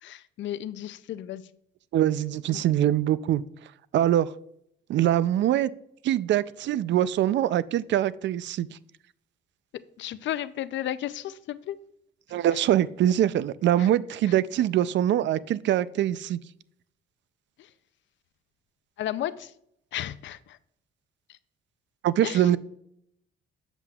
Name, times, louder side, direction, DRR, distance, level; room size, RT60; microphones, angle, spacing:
voice 1, 0.0-1.4 2.5-2.6 10.0-11.8 13.8-13.9 17.6-17.7 19.0-19.5 19.9-20.6 21.3-21.4 22.2-22.5, left 12 dB, 70° left, 0.5 m, -33 dB
voice 2, 1.9-3.4 3.9-4.3 4.9-5.7 6.0-8.7 12.3-16.4 22.0-22.6, right 12 dB, 65° right, 0.4 m, -23 dB
8.0 x 7.5 x 2.3 m
cardioid pair, 90°, 20 cm